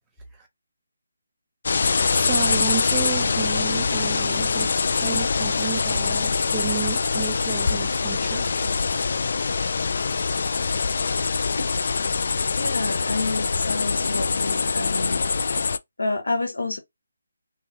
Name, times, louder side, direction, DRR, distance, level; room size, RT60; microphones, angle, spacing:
sound 1, 1.6-15.8, left 4 dB, 55° left, 0.4 m, -24 dB
voice 1, 2.1-8.7, right 9 dB, 10° right, 0.9 m, -32 dB
voice 2, 12.6-15.2 16.0-16.8, left 2 dB, 90° left, 1.4 m, -28 dB
3.5 x 3.0 x 2.7 m
figure-of-eight pair, 160°, 0 cm